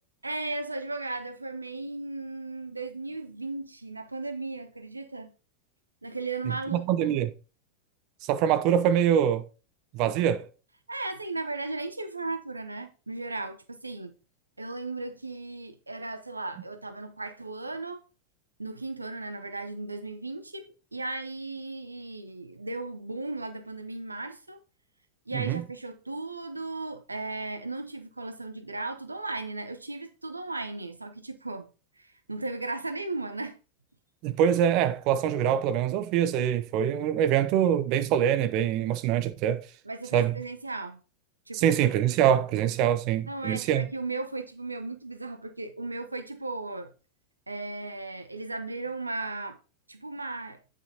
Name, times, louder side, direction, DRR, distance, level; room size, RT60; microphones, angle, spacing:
voice 1, 0.2-5.3 6.0-7.1 10.9-14.1 14.6-18.0 18.6-24.6 25.3-31.7 32.0-33.6 39.8-41.0 41.5-41.7 43.3-46.9 47.5-49.6 49.9-50.6, right 3 dB, 80° right, 0.9 m, -36 dB
voice 2, 6.7-7.3 8.3-9.5 9.9-10.5 25.3-25.6 34.2-39.6 40.1-40.3 41.5-43.8, right 9 dB, 40° right, 0.8 m, -24 dB
9.0 x 6.2 x 2.8 m
figure-of-eight pair, 90°, 0 cm